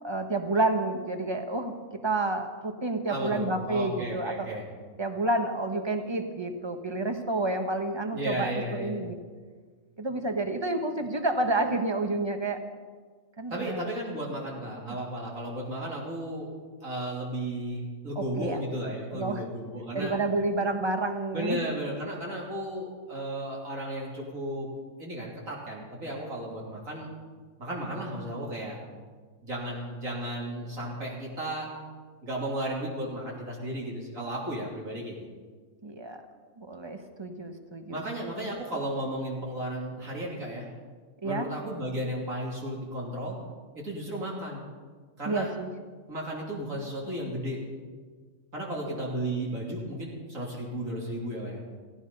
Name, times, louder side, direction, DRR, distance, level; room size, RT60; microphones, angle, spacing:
voice 1, 0.0-1.8 2.0-4.5 5.0-9.2 10.0-12.6 13.4-13.9 18.2-18.6 19.1-19.4 19.9-21.6 35.8-36.2 36.6-38.3 41.2-41.5 45.2-45.7 48.9-49.0, right 2 dB, 20° right, 6 dB, 1.2 m, -29 dB
voice 2, 3.1-4.6 8.1-9.0 13.5-20.1 21.3-24.7 25.0-27.1 27.6-28.8 29.4-31.7 32.2-35.3 37.9-40.7 41.2-43.4 43.7-44.7 45.2-45.5 46.1-47.8 48.5-51.6, right 1 dB, 65° right, -3 dB, 3.4 m, -34 dB
16.5 x 16.5 x 5.4 m, 1.5 s
omnidirectional pair, 1.5 m